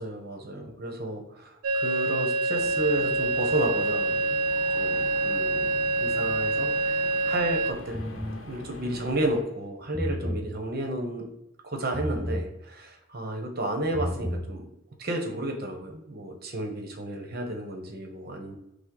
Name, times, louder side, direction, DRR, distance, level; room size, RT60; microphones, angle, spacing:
voice 1, 0.0-4.4 4.7-8.0 8.5-11.3 11.6-14.7 15.0-18.5, right 1 dB, 45° right, 3 dB, 0.8 m, -32 dB
sound 1, 1.6-7.7, right 3 dB, 90° right, 0.4 m, -26 dB
sound 2, 2.5-9.4, left 2 dB, 65° left, 0.7 m, -43 dB
sound 3, 7.9-8.4 9.8-10.5 11.9-12.5 13.8-14.5, equal, ahead, 0.5 m, -31 dB
5.7 x 2.0 x 3.7 m, 0.86 s
head